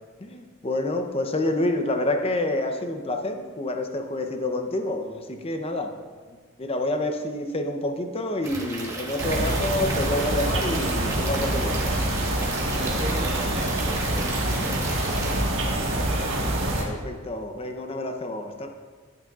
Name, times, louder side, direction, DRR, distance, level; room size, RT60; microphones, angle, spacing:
voice 1, 0.2-5.9 6.6-11.9 16.7-18.7, left 1 dB, 30° left, 5 dB, 0.7 m, -28 dB
Stream / Liquid, 8.4-15.4, right 2 dB, 15° right, 1.2 m, -35 dB
sound 1, 9.2-16.8, right 1 dB, 70° right, 1.5 m, -26 dB
voice 2, 12.3-16.1, equal, 35° right, -8 dB, 1.4 m, -37 dB
12.5 x 8.6 x 2.4 m, 1.6 s
head